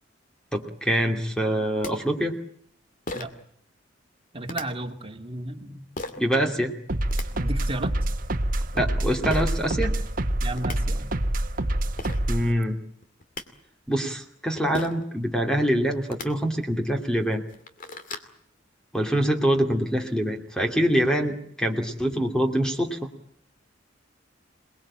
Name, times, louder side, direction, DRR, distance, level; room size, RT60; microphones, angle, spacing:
voice 1, 0.5-2.4 6.2-6.7 8.7-9.9 12.3-12.8 13.9-17.4 18.9-23.0, equal, 5° left, 3 dB, 2.7 m, -25 dB
sound 1, 1.8-1.9 3.1-3.4 4.5-4.6 6.0-6.2 6.9-7.3 9.3-9.5 10.3-10.4 10.6-10.8 11.7-11.8 12.0-12.2 13.0-13.4 14.7-15.1 16.0-16.3 16.9-17.0 17.4-18.3, left 2 dB, 45° left, 2.4 m, -35 dB
voice 2, 4.3-5.8 7.3-7.9 10.4-11.1, right 1 dB, 30° right, 4 dB, 2.4 m, -33 dB
sound 2, 6.9-12.5, right 1 dB, 45° right, 1.5 m, -26 dB
28.0 x 20.5 x 8.8 m, 0.66 s
head